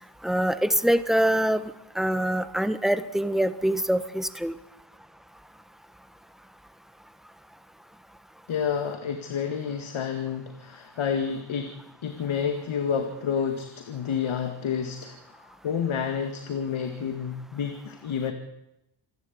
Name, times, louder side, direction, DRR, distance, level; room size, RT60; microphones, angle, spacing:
voice 1, 0.2-4.5, right 1 dB, ahead, 11 dB, 1.4 m, -24 dB
voice 2, 8.5-11.7 12.0-18.3, left 7 dB, 70° left, 6 dB, 2.1 m, -29 dB
27.0 x 12.0 x 8.7 m, 0.86 s
cardioid pair, 85°, 50 cm